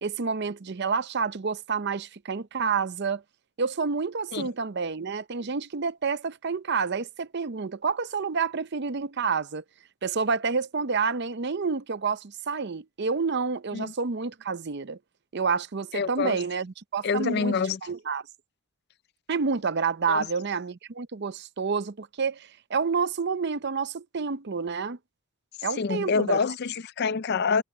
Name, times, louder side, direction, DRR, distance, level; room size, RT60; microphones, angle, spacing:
voice 1, 0.0-3.2 3.6-9.6 10.0-15.0 15.3-17.5 17.8-18.2 19.3-25.0 25.6-26.4, right 5 dB, 50° right, 0.6 m, -29 dB
voice 2, 15.9-16.4 17.0-17.8 20.1-20.3 25.8-27.6, left 5 dB, 45° left, 0.4 m, -26 dB
head